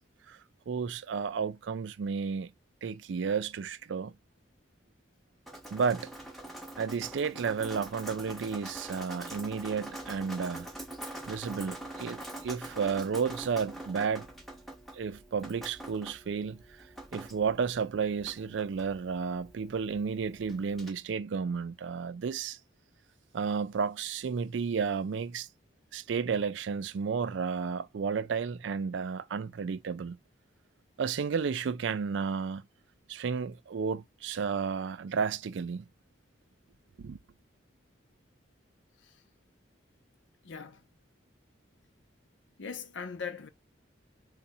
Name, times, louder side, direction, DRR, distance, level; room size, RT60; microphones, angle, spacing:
voice 1, 0.7-2.5 2.8-4.1 5.7-6.1 6.8-10.7 11.3-14.3 14.9-16.6 17.1-22.6 23.3-25.5 25.9-30.2 31.0-32.7 33.1-35.9 37.0-37.2, right 6 dB, 70° right, 0.4 m, -32 dB
Drip, 5.5-20.9, right 1 dB, ahead, 0.6 m, -45 dB
voice 2, 40.4-40.8 42.6-43.5, left 6 dB, 70° left, 0.6 m, -39 dB
2.7 x 2.3 x 4.1 m
head